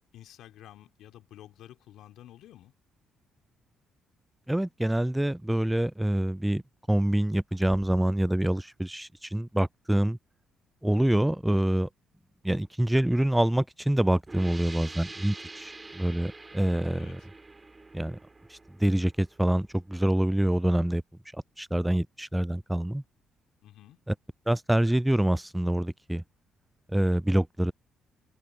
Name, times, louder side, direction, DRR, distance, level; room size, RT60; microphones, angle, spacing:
voice 1, 0.1-2.7 16.9-17.3 23.6-24.0, left 12 dB, 75° left, 2.8 m, -51 dB
voice 2, 4.5-6.6 6.9-10.2 10.8-11.9 12.4-17.1 17.9-18.2 18.5-21.0 21.6-23.0 24.5-26.2 26.9-27.7, right 1 dB, 5° right, 0.4 m, -26 dB
sound 1, 14.3-19.7, right 3 dB, 25° right, 2.4 m, -46 dB
supercardioid pair, 60°, 0 cm